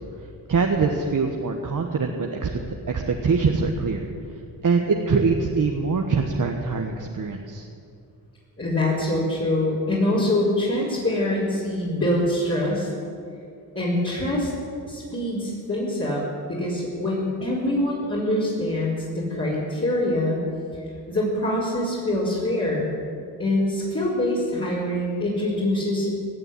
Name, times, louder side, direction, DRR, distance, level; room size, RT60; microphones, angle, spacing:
voice 1, 0.5-2.6 2.9-4.0 4.6-7.7, right 4 dB, 45° right, 2 dB, 1.4 m, -23 dB
voice 2, 8.6-12.9 13.7-14.5 14.8-16.2 16.5-20.4 21.1-22.9 23.4-26.1, left 1 dB, 30° left, -9 dB, 4.7 m, -24 dB
17.0 x 6.9 x 9.9 m, 2.4 s
cardioid pair, 60°, 42 cm